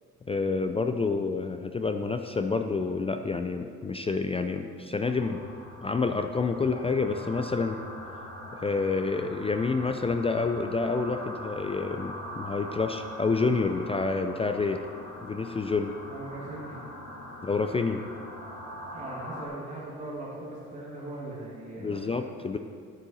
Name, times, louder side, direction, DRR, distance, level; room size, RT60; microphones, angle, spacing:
voice 1, 0.3-5.4 5.8-7.8 8.5-14.8 15.2-15.9 17.4-18.0 21.8-22.6, left 4 dB, 20° left, 7 dB, 0.4 m, -28 dB
sound 1, 5.1-19.5, left 1 dB, 75° left, 2.0 m, -42 dB
voice 2, 16.1-16.8 18.9-22.2, right 2 dB, 25° right, -6 dB, 2.0 m, -39 dB
9.6 x 8.2 x 4.1 m, 2.2 s
cardioid pair, 90°, 30 cm